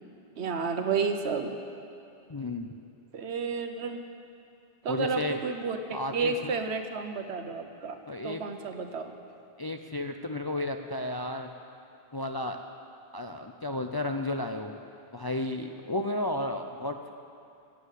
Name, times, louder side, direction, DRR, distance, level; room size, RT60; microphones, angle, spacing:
voice 1, 0.4-1.5 3.1-4.0 4.8-8.0 8.2-9.1, right 5 dB, 85° right, 7 dB, 1.2 m, -31 dB
voice 2, 2.3-2.7 4.9-5.4 5.9-6.6 8.1-8.4 9.6-11.5 12.1-12.6 13.1-14.8 15.1-17.1, left 1 dB, 35° left, 5 dB, 0.4 m, -33 dB
16.5 x 7.7 x 8.2 m, 2.6 s
omnidirectional pair, 1.1 m